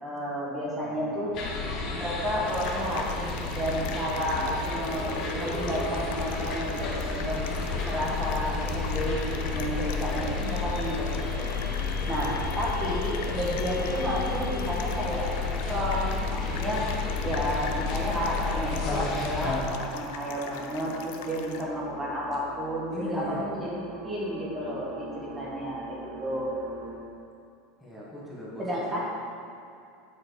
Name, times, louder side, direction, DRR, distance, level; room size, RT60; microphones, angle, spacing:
voice 1, 0.0-1.3 1.9-7.5 7.8-11.5 12.1-16.8 17.2-23.8 24.0-26.5 28.6-29.0, equal, 20° right, -6 dB, 1.5 m, -31 dB
voice 2, 0.8-1.4 22.9-23.4 27.8-29.0, left 1 dB, ahead, -7 dB, 1.5 m, -39 dB
sound 1, 1.3-19.6, left 4 dB, 40° left, 1.5 m, -31 dB
sound 2, 2.5-21.6, left 7 dB, 75° left, 0.5 m, -43 dB
sound 3, 14.7-27.0, right 3 dB, 65° right, 1.3 m, -46 dB
7.9 x 4.3 x 4.7 m, 2.5 s
supercardioid pair, 125°, 0 cm